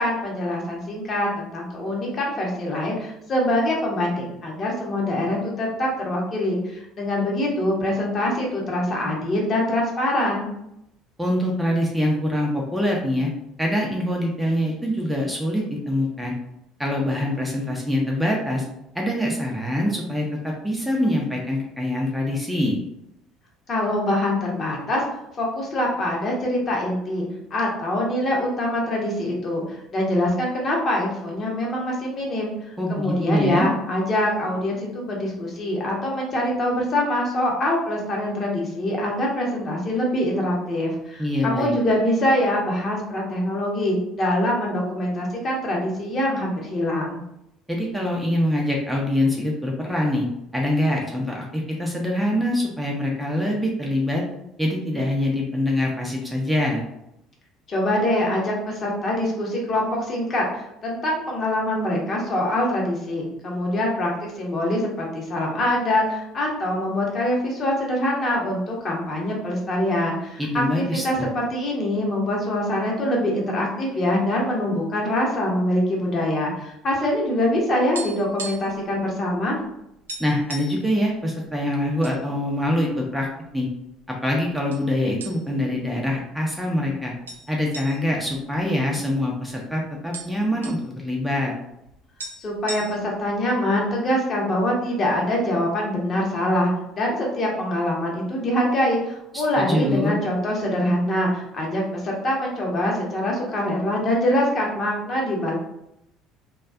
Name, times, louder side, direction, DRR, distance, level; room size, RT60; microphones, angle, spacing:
voice 1, 0.0-10.5 23.7-25.0 25.4-32.5 32.9-47.2 57.7-79.6 92.4-105.5, left 1 dB, 40° left, -2 dB, 0.8 m, -24 dB
voice 2, 11.2-13.3 13.6-16.4 16.8-18.6 18.9-22.8 32.8-33.7 41.2-41.7 47.7-50.3 50.5-54.2 54.6-56.8 70.4-71.3 80.2-83.3 83.5-83.7 84.2-87.1 87.5-91.5 99.3-100.2, left 1 dB, 5° right, -1 dB, 0.5 m, -24 dB
sound 1, 77.4-78.8 79.1-79.3 79.6-79.7 80.1-80.8 81.5-82.2 82.6-82.7 83.4-84.0 84.7-84.9 85.2-85.7 86.1-86.2 87.3-89.3 89.6-89.7 89.9-90.8 91.9-92.0 92.2-93.3, right 3 dB, 80° right, 0.3 m, -37 dB
2.4 x 2.2 x 2.3 m, 0.82 s
figure-of-eight pair, 60°, 0 cm